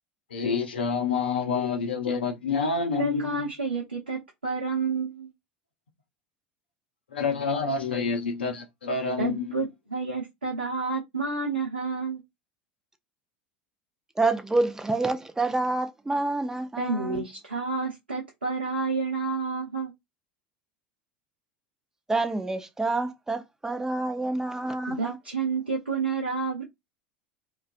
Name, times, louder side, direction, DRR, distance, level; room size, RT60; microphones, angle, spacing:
voice 1, 0.3-3.5 7.1-9.5, left 4 dB, 80° left, 0.5 m, -28 dB
voice 2, 3.0-5.3 9.2-12.2 16.8-19.9 24.9-26.6, right 4 dB, 85° right, 0.7 m, -30 dB
voice 3, 14.2-17.2 22.1-25.2, right 2 dB, 10° right, 0.5 m, -28 dB
2.4 x 2.2 x 2.4 m
figure-of-eight pair, 75°, 5 cm